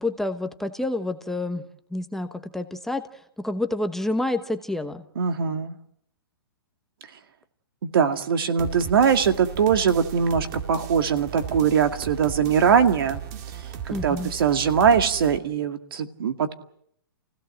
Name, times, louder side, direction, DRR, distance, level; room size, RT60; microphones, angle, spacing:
voice 1, 0.0-1.6 1.9-5.0 13.9-14.3, left 2 dB, 5° left, 7 dB, 1.1 m, -28 dB
voice 2, 5.2-5.8 7.8-13.2 13.9-16.5, right 7 dB, 70° right, 8 dB, 2.1 m, -21 dB
sound 1, 8.6-15.4, right 8 dB, 45° right, 2.3 m, -36 dB
29.0 x 16.5 x 7.8 m, 0.72 s
hypercardioid pair, 135°, 12 cm